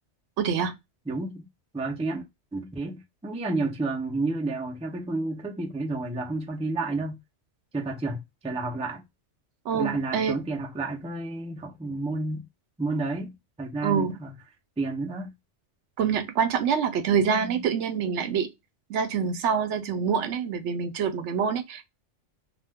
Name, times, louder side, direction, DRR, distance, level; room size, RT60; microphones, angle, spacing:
voice 1, 0.4-0.7 9.7-10.4 13.8-14.1 16.0-18.5 18.9-21.8, right 7 dB, 80° right, 0.9 m, -26 dB
voice 2, 1.1-1.5 1.7-7.2 7.7-9.0 9.7-12.5 12.8-14.4 14.8-15.3, right 3 dB, 10° right, 0.3 m, -31 dB
2.4 x 2.1 x 3.3 m
omnidirectional pair, 1.2 m